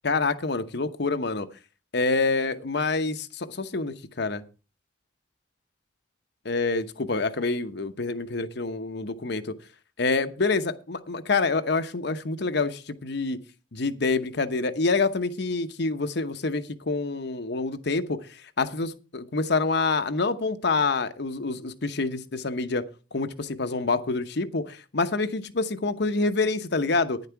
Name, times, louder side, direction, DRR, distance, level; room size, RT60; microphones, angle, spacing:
voice 1, 0.0-1.5 1.9-4.4 6.4-9.5 10.0-13.4 13.7-18.2 18.6-22.8 23.1-27.2, left 3 dB, 60° left, 0.9 m, -27 dB
10.5 x 9.9 x 4.6 m
head